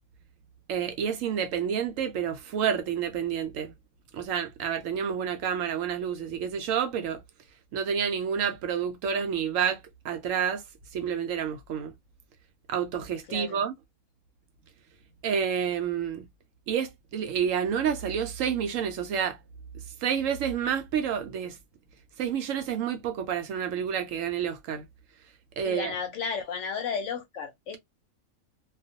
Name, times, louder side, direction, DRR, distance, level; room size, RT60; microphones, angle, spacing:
voice 1, 0.7-3.7 4.1-7.2 7.7-9.8 10.0-10.6 10.9-11.9 12.7-13.7 15.2-16.3 16.7-19.4 20.0-21.6 22.2-24.8 25.6-25.9, right 8 dB, 70° right, 0.9 m, -29 dB
voice 2, 13.3-13.6 25.6-27.8, left 6 dB, 70° left, 0.9 m, -33 dB
2.4 x 2.2 x 2.5 m
omnidirectional pair, 1.5 m